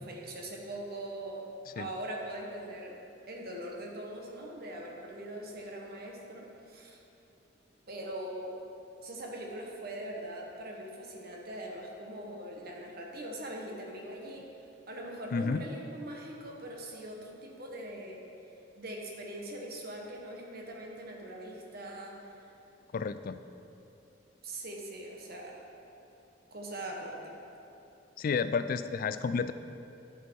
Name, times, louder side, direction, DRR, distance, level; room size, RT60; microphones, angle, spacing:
voice 1, 0.0-1.4 1.7-3.0 3.3-7.0 7.9-8.6 9.0-14.5 14.9-18.2 18.7-22.5 24.4-25.6 26.5-27.4, right 1 dB, 55° right, 0 dB, 1.3 m, -42 dB
voice 2, 15.3-15.6 22.9-23.4 28.2-29.5, left 5 dB, 50° left, 12 dB, 0.3 m, -31 dB
11.0 x 6.5 x 4.6 m, 2.8 s
head